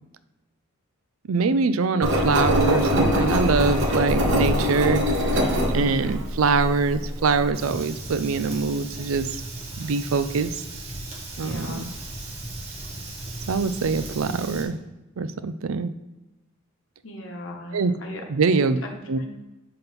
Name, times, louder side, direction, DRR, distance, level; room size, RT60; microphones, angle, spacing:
voice 1, 1.3-5.0 5.7-9.4 9.8-10.5 11.4-11.9 13.5-14.8 15.2-15.9 17.7-17.9 18.3-18.8 19.1-19.2, right 4 dB, 85° right, 12 dB, 0.5 m, -23 dB
Engine, 2.0-7.5, equal, 60° right, 1.1 m, -23 dB
voice 2, 5.8-6.3 11.4-11.8 17.0-18.2 18.8-19.3, left 1 dB, 65° left, 2 dB, 1.1 m, -39 dB
Fire, 7.5-14.6, right 2 dB, 30° right, 1.4 m, -36 dB
5.2 x 3.8 x 5.9 m, 1.0 s
head